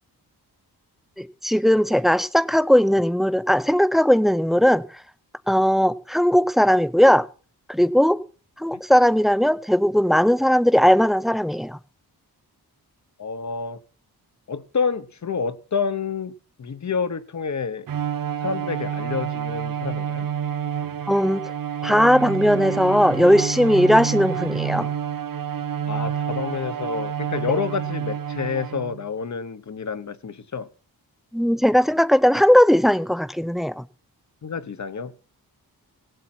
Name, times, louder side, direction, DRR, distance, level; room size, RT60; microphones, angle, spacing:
voice 1, 1.2-4.8 5.5-7.3 7.7-8.2 8.6-11.8 21.1-21.4 21.8-24.9 31.3-33.8, equal, ahead, 0.5 m, -18 dB
voice 2, 13.2-13.8 14.5-17.9 18.4-20.3 25.9-30.7 34.4-35.1, left 5 dB, 45° left, 1.0 m, -28 dB
Bowed string instrument, 17.9-29.1, right 8 dB, 60° right, 0.8 m, -28 dB
17.5 x 8.1 x 4.3 m
wide cardioid pair, 170°, 38 cm